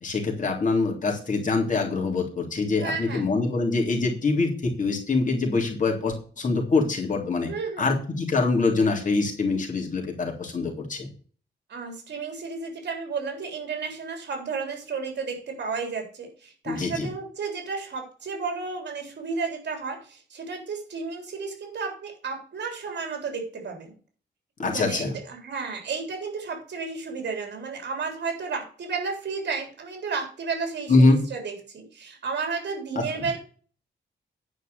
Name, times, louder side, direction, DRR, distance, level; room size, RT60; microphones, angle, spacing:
voice 1, 0.0-7.5 7.8-11.1 16.6-17.1 24.6-25.1 30.9-31.2 32.9-33.2, left 3 dB, 45° left, 0 dB, 3.2 m, -24 dB
voice 2, 2.8-3.2 7.4-7.9 11.7-23.9 24.6-33.4, right 5 dB, 70° right, 3 dB, 3.4 m, -32 dB
9.9 x 5.3 x 6.8 m, 0.42 s
wide cardioid pair, 125°, 18 cm